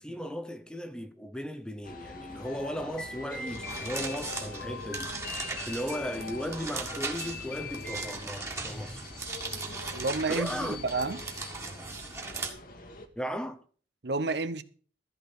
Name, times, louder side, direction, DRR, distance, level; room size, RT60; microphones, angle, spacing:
voice 1, 0.0-5.2 5.4-9.1 10.3-10.8 13.2-13.6, equal, 5° left, 0.7 m, -36 dB
sound 1, 1.8-13.1, left 2 dB, 45° left, 1.5 m, -46 dB
sound 2, 2.4-8.2, left 4 dB, 65° left, 2.6 m, -42 dB
sound 3, 3.5-12.5, right 3 dB, 15° right, 1.7 m, -39 dB
voice 2, 9.9-11.2 14.0-14.6, right 3 dB, 60° right, 0.7 m, -30 dB
14.0 x 5.1 x 7.7 m
head